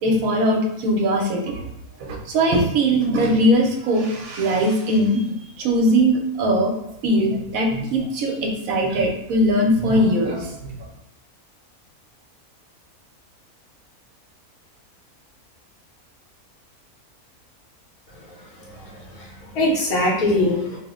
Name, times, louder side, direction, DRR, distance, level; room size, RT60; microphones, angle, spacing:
voice 1, 0.0-1.7 2.0-6.7 7.0-10.8, equal, 75° right, 1 dB, 1.0 m, -20 dB
voice 2, 18.4-20.8, left 1 dB, 80° left, -2 dB, 1.4 m, -23 dB
3.0 x 2.1 x 3.5 m, 0.78 s
omnidirectional pair, 1.6 m